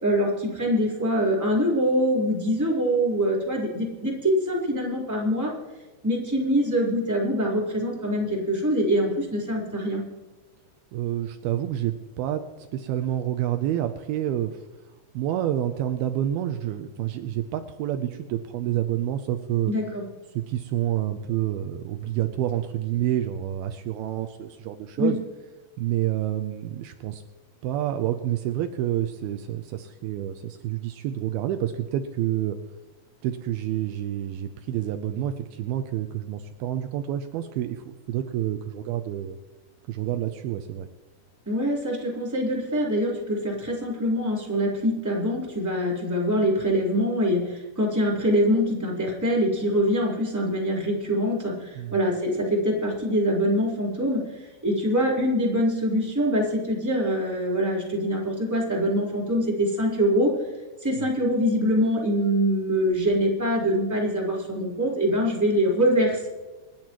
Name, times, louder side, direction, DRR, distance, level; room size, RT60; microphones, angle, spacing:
voice 1, 0.0-5.5 6.0-10.0 19.7-20.0 25.0-25.1 41.4-60.3 60.8-66.3, equal, 5° right, -5 dB, 3.2 m, -24 dB
voice 2, 10.9-14.6 15.1-19.7 20.4-25.2 25.8-27.2 27.6-32.6 33.2-39.4 39.9-40.9 51.8-51.9, right 12 dB, 85° right, 7 dB, 2.2 m, -28 dB
27.5 x 10.5 x 3.1 m, 1.2 s
omnidirectional pair, 5.2 m